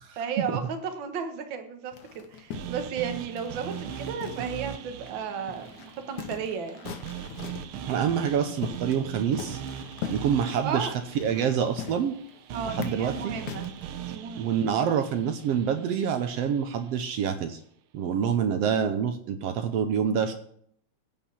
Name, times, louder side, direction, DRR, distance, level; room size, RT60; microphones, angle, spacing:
voice 1, 0.2-6.9 10.6-10.9 12.5-13.7 14.0-14.5, right 6 dB, 50° right, 6 dB, 1.7 m, -34 dB
sound 1, 1.9-4.8 5.1-5.2 5.5-7.8 8.3-9.1 9.4-13.8, left 9 dB, 80° left, 2.4 m, -40 dB
sound 2, 2.5-16.7, right 10 dB, 90° right, 1.1 m, -40 dB
voice 2, 7.9-9.6 10.1-12.1 12.7-13.3 14.4-17.6 17.9-20.3, right 7 dB, 70° right, 8 dB, 1.6 m, -27 dB
15.5 x 5.5 x 5.9 m, 0.66 s
omnidirectional pair, 3.5 m